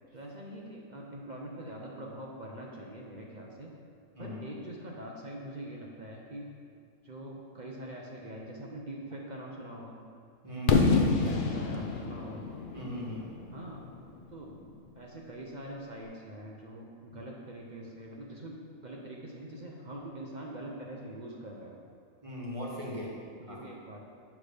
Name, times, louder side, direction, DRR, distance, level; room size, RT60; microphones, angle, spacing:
voice 1, 0.1-3.7 4.2-6.5 7.0-10.0 11.1-12.5 13.5-13.8 14.3-14.6 14.9-21.8 22.9-24.0, right 1 dB, 40° right, -2 dB, 0.7 m, -44 dB
voice 2, 10.4-11.3 12.7-13.2 22.2-23.1 23.5-23.6, equal, 25° right, -4 dB, 1.4 m, -39 dB
Fireworks, 10.7-14.5, left 4 dB, 55° left, 0.6 m, -28 dB
8.1 x 3.5 x 6.4 m, 2.3 s
omnidirectional pair, 1.5 m